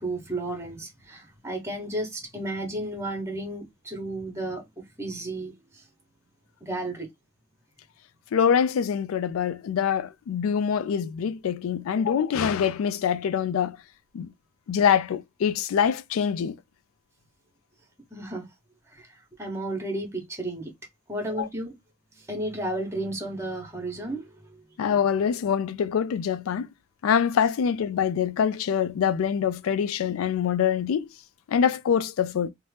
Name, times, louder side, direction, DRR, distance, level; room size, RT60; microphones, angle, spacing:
voice 1, 0.0-5.9 6.6-7.1 18.1-18.5 18.9-20.7 21.1-21.7 22.1-24.6, right 1 dB, 15° right, 1.0 m, -33 dB
voice 2, 8.3-13.8 14.1-14.3 14.7-16.6 21.4-21.5 24.8-26.7 27.0-31.1 31.5-32.5, left 7 dB, 80° left, 0.3 m, -24 dB
2.8 x 2.1 x 3.2 m
head